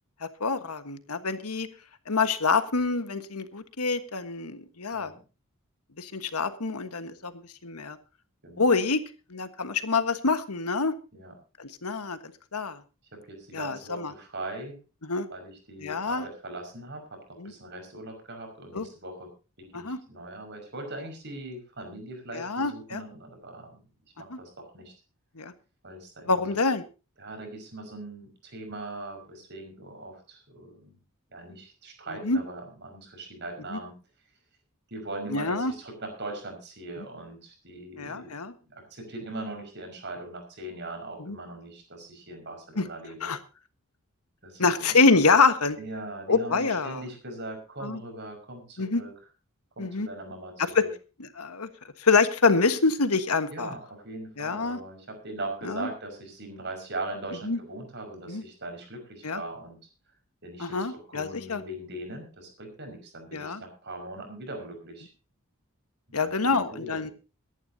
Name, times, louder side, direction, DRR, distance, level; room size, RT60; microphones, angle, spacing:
voice 1, 0.2-1.7 2.1-5.1 6.0-8.0 8.6-9.0 9.3-10.9 11.6-12.8 13.5-14.1 15.0-15.3 15.8-16.2 17.4-17.5 18.7-18.9 19.7-20.0 22.3-23.0 24.3-24.4 25.4-25.5 26.3-26.8 32.2-32.4 33.7-33.8 35.3-35.7 37.0-37.1 38.0-38.5 41.2-41.4 42.8-42.9 43.2-43.4 44.6-45.8 46.3-47.0 47.8-48.0 48.8-49.0 49.8-50.1 50.7-50.9 51.2-51.7 52.0-53.7 54.4-54.8 55.6-55.9 57.4-57.6 58.3-58.4 59.2-59.4 60.6-61.6 63.3-63.6 66.1-67.1, left 4 dB, 85° left, 10 dB, 1.4 m, -26 dB
voice 2, 8.4-8.7 11.1-11.3 13.1-14.8 15.3-19.3 19.6-23.8 24.2-24.9 25.8-26.6 27.2-30.9 31.3-33.9 34.9-38.3 38.7-43.3 44.4-45.2 45.8-49.1 49.8-50.9 53.5-59.8 60.4-65.1 66.1-67.1, right 2 dB, 50° right, 4 dB, 5.7 m, -40 dB
23.5 x 11.0 x 2.8 m, 0.32 s
head